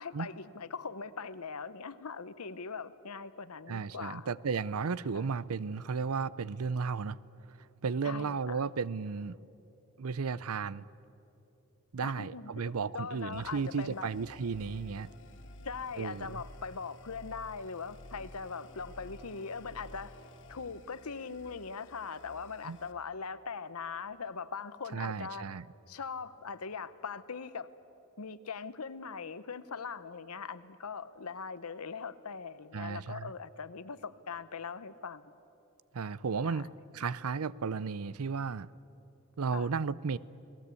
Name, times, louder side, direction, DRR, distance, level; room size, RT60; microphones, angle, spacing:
voice 1, 0.0-4.3 5.1-5.3 8.0-8.6 12.0-14.1 15.6-20.1 20.5-25.5 25.9-27.7 28.2-35.3 36.0-36.1 36.4-36.7 39.5-39.7, left 5 dB, 80° left, 0.9 m, -41 dB
voice 2, 3.7-7.2 7.8-9.4 10.0-10.9 11.9-15.1 16.0-16.4 22.6-22.8 24.9-25.6 32.7-33.3 35.9-36.7 36.9-38.7 39.4-40.2, right 5 dB, 75° right, 0.6 m, -34 dB
sound 1, 13.3-22.9, left 1 dB, 60° left, 2.1 m, -52 dB
30.0 x 19.5 x 8.4 m
head